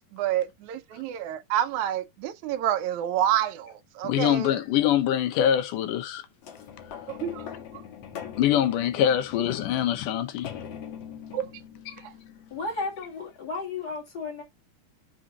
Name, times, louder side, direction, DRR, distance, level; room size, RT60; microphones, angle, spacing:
voice 1, 0.1-4.6 7.1-7.5 7.7-7.8 11.3-11.5 12.0-12.1, right 11 dB, 75° right, 2.1 m, -28 dB
voice 2, 4.0-6.3 8.4-10.5 11.9-12.0, left 10 dB, 80° left, 2.4 m, -24 dB
sound 1, 6.4-13.2 13.8-13.9, left 8 dB, 60° left, 2.2 m, -42 dB
voice 3, 12.5-14.4, left 3 dB, 35° left, 2.5 m, -33 dB
6.2 x 3.8 x 6.0 m
omnidirectional pair, 3.6 m